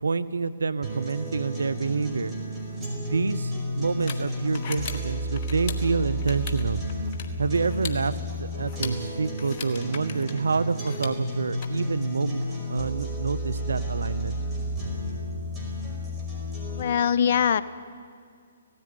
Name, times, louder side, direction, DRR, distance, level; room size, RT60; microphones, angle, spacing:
voice 1, 0.0-2.3 3.1-6.8 7.4-12.4 12.7-14.3, right 4 dB, 80° right, 15 dB, 0.8 m, -27 dB
sound 1, 0.8-16.8, equal, 15° right, 5.3 m, -32 dB
sound 2, 2.9-11.6, left 6 dB, 40° left, 1.8 m, -41 dB
voice 2, 16.7-17.6, left 8 dB, 55° left, 13 dB, 0.7 m, -22 dB
17.5 x 15.0 x 9.9 m, 2.2 s
hypercardioid pair, 135°, 0 cm